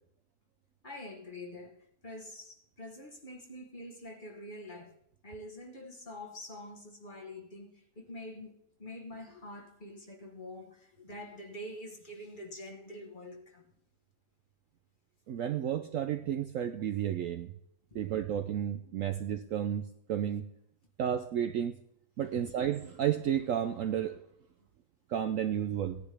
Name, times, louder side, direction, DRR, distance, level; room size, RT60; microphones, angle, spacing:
voice 1, 0.8-5.0 5.2-13.7 17.9-18.2 22.3-22.5, left 1 dB, 30° left, 1.3 m, -46 dB
voice 2, 15.3-17.5 17.9-20.4 21.0-21.8 22.2-24.2 25.1-26.0, right 10 dB, 65° right, 0.8 m, -32 dB
16.5 x 10.5 x 3.4 m
omnidirectional pair, 1.8 m